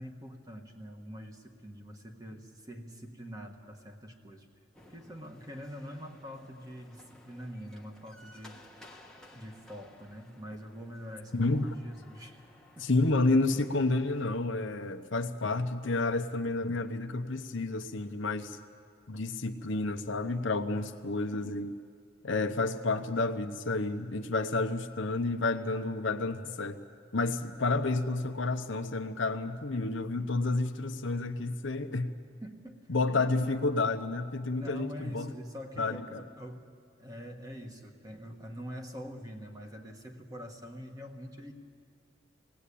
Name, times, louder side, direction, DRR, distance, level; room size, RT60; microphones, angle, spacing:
voice 1, 0.0-4.5 4.9-8.6 9.3-12.4 12.7-12.9 20.7-20.9 32.4-32.9 34.5-36.7 37.0-41.5, equal, 20° right, 3 dB, 1.5 m, -45 dB
sound 1, 4.7-14.2, left 1 dB, 5° left, 1.3 m, -57 dB
voice 2, 11.3-11.7 12.8-18.6 19.1-21.8 22.2-26.8 27.1-32.1 32.9-35.3 35.8-36.2, left 3 dB, 70° left, 7 dB, 0.9 m, -30 dB
20.5 x 18.0 x 8.5 m, 2.2 s
head